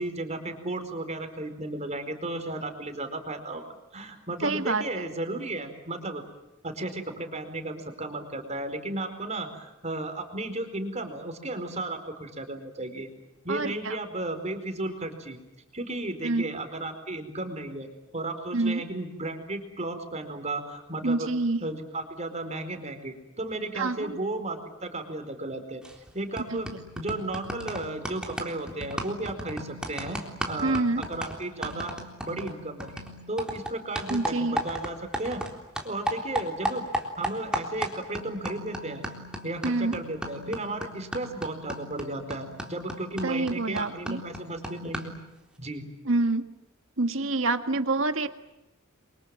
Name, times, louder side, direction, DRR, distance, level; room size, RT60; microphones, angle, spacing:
voice 1, 0.0-3.6 3.9-6.2 6.6-13.1 13.4-15.4 15.7-17.9 18.1-21.3 21.6-25.8 26.1-26.7 27.0-31.9 32.2-35.4 35.8-36.9 37.2-39.0 39.4-45.1 45.6-45.8, right 2 dB, 35° right, 7 dB, 4.5 m, -34 dB
voice 2, 4.4-4.8 13.5-14.0 16.2-16.5 18.5-18.8 21.0-21.7 23.8-24.2 26.5-26.6 30.6-31.1 34.1-34.6 39.6-40.0 43.2-44.2 46.1-46.4 47.0-48.3, right 2 dB, 65° right, 9 dB, 1.8 m, -27 dB
sound 1, 25.8-26.1 26.4-35.5 35.8-45.2, right 1 dB, 5° right, 3.8 m, -36 dB
30.0 x 24.5 x 7.8 m, 0.96 s
head